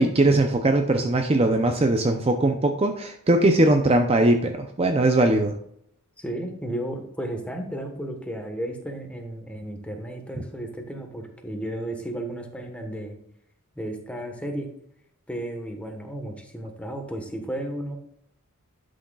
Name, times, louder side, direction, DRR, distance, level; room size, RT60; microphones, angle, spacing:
voice 1, 0.0-5.5, right 2 dB, 25° right, 5 dB, 0.5 m, -20 dB
voice 2, 6.2-13.2 13.8-14.7 15.3-18.0, right 1 dB, 5° left, 3 dB, 1.2 m, -33 dB
11.5 x 6.3 x 2.3 m, 0.72 s
head